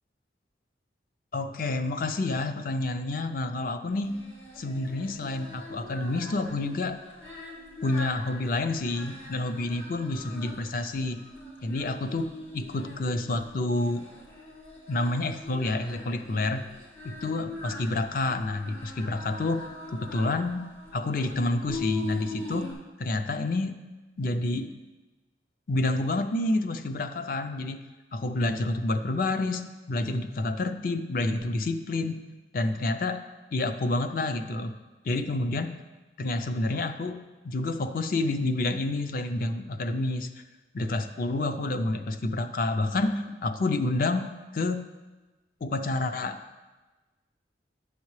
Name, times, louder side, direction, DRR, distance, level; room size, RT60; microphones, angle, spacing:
voice 1, 1.3-4.2 4.6-7.0 7.8-11.2 11.6-14.1 14.9-16.7 17.0-19.6 19.9-20.7 20.9-23.8 24.2-24.7 25.7-32.2 32.5-33.2 33.5-34.8 35.0-35.8 36.2-40.3 40.7-44.9 45.6-46.4, left 2 dB, 50° left, 9 dB, 0.5 m, -29 dB
Singing, 4.0-22.7, left 3 dB, 80° left, 2.1 m, -42 dB
9.6 x 7.2 x 3.2 m, 1.2 s
head